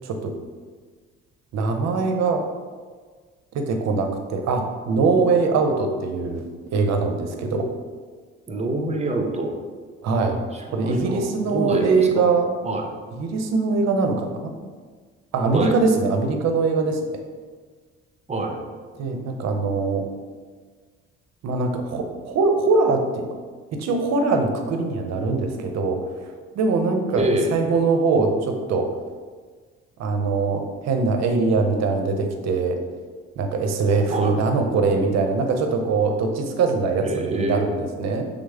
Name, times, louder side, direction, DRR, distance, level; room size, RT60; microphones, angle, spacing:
voice 1, 0.0-0.3 1.5-2.4 3.5-6.4 6.7-7.7 10.0-10.4 10.7-12.5 13.1-14.5 15.3-17.0 19.0-20.1 21.4-23.3 23.7-26.0 26.5-28.9 30.0-32.8 33.4-38.3, right 4 dB, 55° right, 5 dB, 0.7 m, -22 dB
voice 2, 8.5-9.5 10.7-12.2 12.6-12.8 15.5-15.8 18.3-18.6 27.1-27.6 34.1-34.4 37.0-37.7, right 2 dB, 20° right, 2 dB, 0.8 m, -26 dB
6.1 x 2.0 x 3.5 m, 1.5 s
hypercardioid pair, 60°, 31 cm